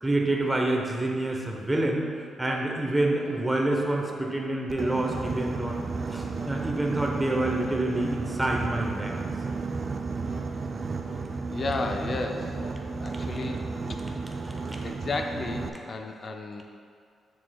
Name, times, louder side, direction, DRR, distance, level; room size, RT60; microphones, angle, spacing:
voice 1, 0.0-2.1 2.4-5.7 6.1-9.2 14.4-14.8, right 1 dB, 10° right, -1 dB, 0.7 m, -27 dB
sound 1, 1.7-1.9 2.5-2.7 3.2-3.5 4.0-4.3 4.8-5.0 5.6-5.8 6.4-6.6 7.1-7.4 7.9-8.2 8.7-8.9 9.5-9.7 10.3-10.5 11.0-11.3 11.8-12.1 12.6-12.8 13.4-13.6, left 1 dB, 65° left, 1.3 m, -46 dB
Boat Water vehicle, 4.7-15.7, right 4 dB, 35° right, 0.3 m, -33 dB
voice 2, 11.5-12.6 13.0-13.6 13.9-14.0 14.8-16.6, left 3 dB, 35° left, 4 dB, 0.4 m, -33 dB
7.3 x 6.1 x 2.2 m, 2.2 s
cardioid pair, 140°, 0 cm